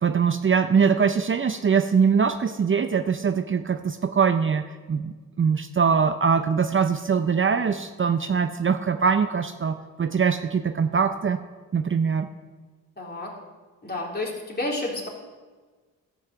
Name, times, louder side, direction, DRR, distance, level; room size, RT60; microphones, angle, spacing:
voice 1, 0.0-11.4 11.7-12.3, right 6 dB, 35° right, 9 dB, 0.6 m, -22 dB
voice 2, 13.0-13.3 13.8-15.1, left 2 dB, 30° left, -2 dB, 3.8 m, -30 dB
13.0 x 5.6 x 7.7 m, 1.4 s
cardioid pair, 55°, 34 cm